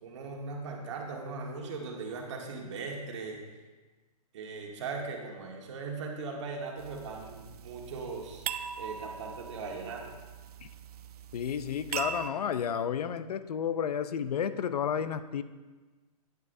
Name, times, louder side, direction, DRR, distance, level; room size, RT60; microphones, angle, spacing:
voice 1, 0.0-3.4 4.3-8.4 8.8-10.1, right 4 dB, 50° right, 1 dB, 1.5 m, -39 dB
sound 1, 6.8-12.3, right 7 dB, 80° right, 0.5 m, -41 dB
voice 2, 11.3-15.4, left 8 dB, 80° left, 12 dB, 0.5 m, -31 dB
9.2 x 8.2 x 2.6 m, 1.3 s
hypercardioid pair, 165°, 19 cm